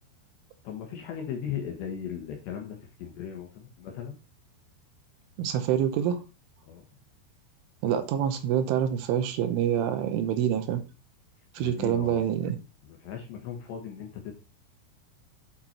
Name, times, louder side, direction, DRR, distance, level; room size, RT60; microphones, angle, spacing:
voice 1, 0.6-4.1 6.7-6.8 11.6-12.2 12.8-14.3, left 8 dB, 70° left, 3.2 m, -37 dB
voice 2, 5.4-6.2 7.8-10.8 11.5-12.6, right 9 dB, 80° right, 3.3 m, -26 dB
8.9 x 5.8 x 4.3 m
omnidirectional pair, 5.8 m